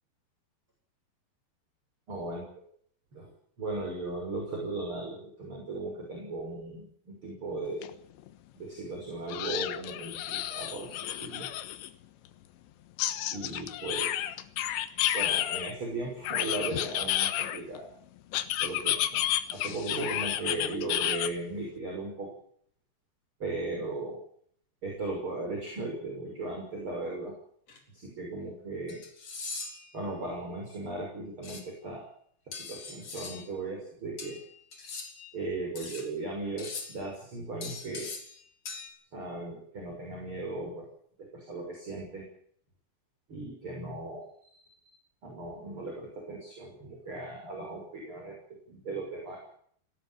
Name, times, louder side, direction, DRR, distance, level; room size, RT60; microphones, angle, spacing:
voice 1, 2.1-2.4 3.1-3.3 3.6-7.9 8.6-11.5 13.3-14.2 15.1-17.9 18.6-19.2 19.5-22.3 23.4-24.2 24.8-27.3 27.9-29.0 29.9-32.0 32.4-34.4 35.3-38.1 39.1-40.9 41.2-42.3 43.3-44.6 45.2-48.4 48.7-49.5, right 2 dB, 30° right, 0 dB, 6.8 m, -37 dB
sound 1, 7.8-7.9 8.3-8.4 9.3-11.9 13.0-15.7 16.2-17.8 18.3-21.3, left 12 dB, 85° left, 3.6 m, -31 dB
sound 2, 27.7-27.8 28.9-29.9 31.4-31.6 32.5-33.5 34.2-35.3 35.8-36.1 36.6-37.0 37.6-38.4 38.7-38.9, left 4 dB, 35° left, 4.8 m, -41 dB
19.0 x 18.5 x 8.9 m, 0.62 s
omnidirectional pair, 5.0 m